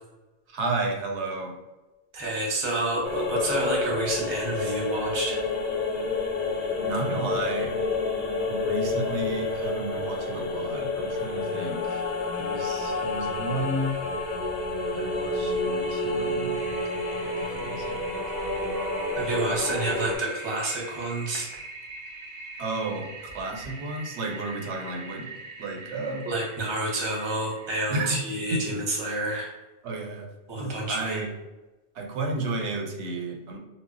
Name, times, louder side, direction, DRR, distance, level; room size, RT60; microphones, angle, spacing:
voice 1, 0.5-1.5 6.8-7.7 8.5-12.0 12.4-14.0 14.9-16.6 17.2-18.0 19.3-19.6 22.6-23.1 23.3-26.3 27.9-28.2 28.5-28.6 29.8-30.3 30.6-31.3 31.9-33.6, right 2 dB, 90° right, 2 dB, 0.9 m, -32 dB
voice 2, 2.1-5.4 19.2-21.5 26.2-29.5 30.5-31.2, right 2 dB, 30° right, -2 dB, 0.7 m, -29 dB
sound 1, 3.0-20.2, left 3 dB, 50° left, 0.5 m, -29 dB
Toilet flush, 16.5-28.1, right 3 dB, 55° right, 0.3 m, -43 dB
2.1 x 2.0 x 3.7 m, 1.1 s
omnidirectional pair, 1.1 m